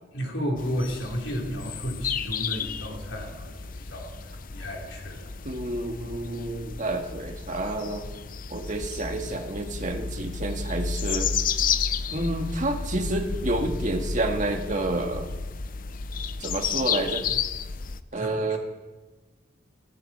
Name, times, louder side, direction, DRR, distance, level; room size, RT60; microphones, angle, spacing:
voice 1, 0.1-5.3 18.2-18.6, equal, 85° left, 0 dB, 3.6 m, -33 dB
sound 1, 0.6-18.0, left 6 dB, 50° left, 0.6 m, -32 dB
voice 2, 5.5-8.0 8.5-11.3 12.1-15.3 16.4-17.2 18.1-18.6, right 2 dB, 45° right, 3 dB, 1.8 m, -29 dB
18.5 x 17.0 x 4.4 m, 1.2 s
head